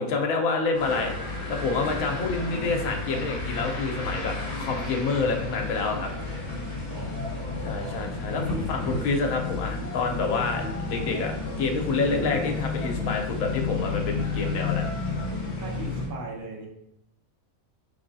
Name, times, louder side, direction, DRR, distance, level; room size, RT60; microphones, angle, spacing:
voice 1, 0.0-6.1 7.6-14.9, left 4 dB, 75° left, 2 dB, 1.1 m, -28 dB
sound 1, 0.7-16.1, left 3 dB, 35° left, 1.3 m, -32 dB
voice 2, 2.0-2.7 6.9-9.2 12.1-12.5 15.5-16.7, right 1 dB, 90° right, -1 dB, 1.4 m, -39 dB
sound 2, 8.4-15.9, equal, ahead, 1.1 m, -41 dB
4.7 x 3.4 x 2.6 m, 0.80 s
omnidirectional pair, 1.5 m